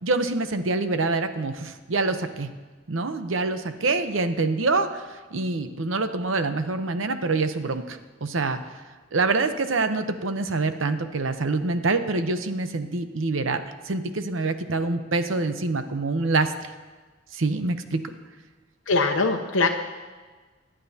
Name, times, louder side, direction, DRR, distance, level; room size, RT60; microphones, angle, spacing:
voice 1, 0.0-2.5 2.9-8.6 9.1-16.7 17.3-18.0, right 3 dB, 80° right, 9 dB, 0.8 m, -26 dB
voice 2, 18.9-19.7, left 3 dB, 80° left, 3 dB, 0.8 m, -21 dB
24.0 x 10.0 x 2.8 m, 1.3 s
head